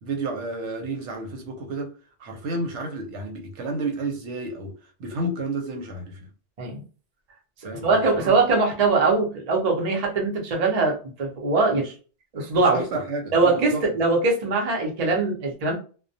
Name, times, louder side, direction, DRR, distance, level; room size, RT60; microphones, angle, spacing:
voice 1, 0.0-1.9 2.2-6.3 7.6-8.4 11.7-11.9 12.6-13.8, right 2 dB, 80° right, 1.0 m, -31 dB
voice 2, 7.8-11.8 12.3-12.8 13.3-15.7, right 3 dB, 40° right, 0.7 m, -22 dB
2.2 x 2.1 x 2.6 m
omnidirectional pair, 1.2 m